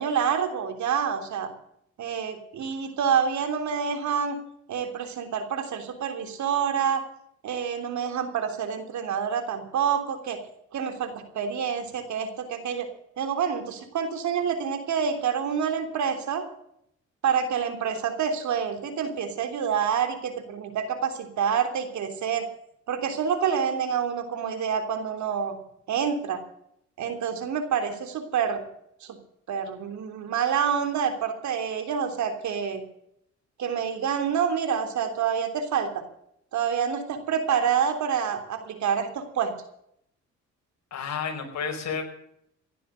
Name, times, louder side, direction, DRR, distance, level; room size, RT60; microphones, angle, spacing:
voice 1, 0.0-1.5 2.0-4.3 4.7-7.0 7.4-10.4 10.7-12.9 13.2-16.4 17.2-22.5 22.9-25.6 25.9-26.4 27.0-28.6 29.0-29.2 29.5-32.8 33.6-35.9 36.5-39.5, right 7 dB, 70° right, 7 dB, 3.4 m, -27 dB
voice 2, 40.9-42.0, left 6 dB, 60° left, 4 dB, 4.9 m, -31 dB
16.0 x 11.0 x 6.6 m, 0.72 s
cardioid pair, 90°, 30 cm